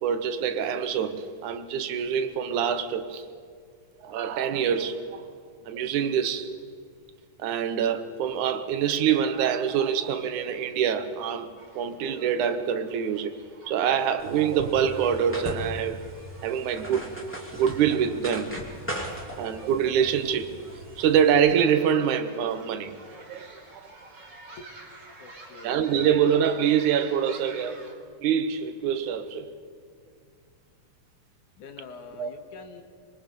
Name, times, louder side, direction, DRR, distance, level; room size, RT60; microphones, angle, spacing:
voice 1, 0.0-3.3 4.0-5.3 5.7-6.5 7.4-13.4 13.7-16.1 16.4-17.1 17.5-18.6 19.1-20.5 21.0-23.0 23.3-23.5 25.6-27.8 28.2-29.5 32.2-32.3, right 8 dB, 75° right, 2.4 m, -25 dB
sound 1, 11.6-27.9, right 3 dB, 35° right, 3.2 m, -50 dB
sound 2, 14.2-21.3, right 1 dB, 5° left, 2.2 m, -39 dB
voice 2, 25.2-25.8 31.6-32.8, left 4 dB, 75° left, 3.0 m, -45 dB
25.0 x 23.0 x 5.3 m
omnidirectional pair, 3.6 m